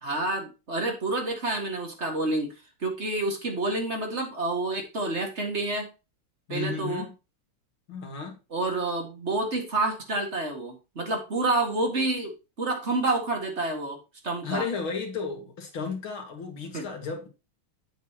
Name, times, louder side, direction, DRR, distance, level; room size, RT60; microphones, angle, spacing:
voice 1, 0.0-2.5 2.8-5.9 6.5-7.1 8.5-12.3 12.6-14.0 14.2-14.6 16.7-16.9, right 2 dB, 30° right, 2.1 m, -28 dB
voice 2, 6.5-7.1 7.9-8.3 14.4-17.3, left 5 dB, 70° left, 2.8 m, -33 dB
8.2 x 8.1 x 3.0 m
omnidirectional pair, 2.3 m